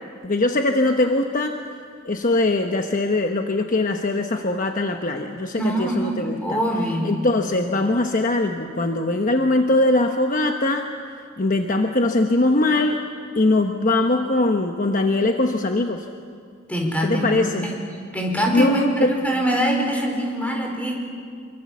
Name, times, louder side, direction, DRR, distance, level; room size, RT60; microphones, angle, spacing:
voice 1, 0.2-1.6 2.0-6.6 7.0-10.9 11.4-13.0 13.4-16.0 17.0-17.7 18.5-19.1, left 2 dB, 40° left, 4 dB, 1.1 m, -21 dB
voice 2, 5.5-7.1 16.7-17.8 18.1-18.8 19.1-20.9, equal, 5° left, 0 dB, 4.7 m, -23 dB
27.0 x 24.0 x 7.4 m, 2.2 s
head